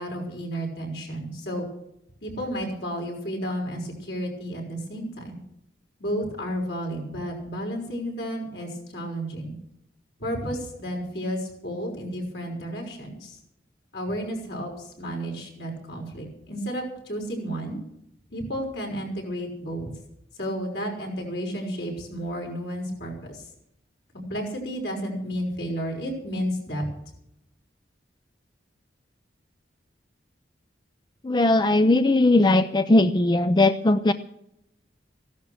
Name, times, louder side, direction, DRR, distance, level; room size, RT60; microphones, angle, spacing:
voice 1, 0.0-1.7 2.2-5.4 6.0-9.6 10.2-13.4 13.9-17.8 18.3-19.9 20.4-23.4 24.1-26.8, equal, 65° left, 0 dB, 5.7 m, -32 dB
voice 2, 31.2-34.1, left 2 dB, 25° left, 11 dB, 0.5 m, -19 dB
16.0 x 11.5 x 6.3 m, 0.80 s
head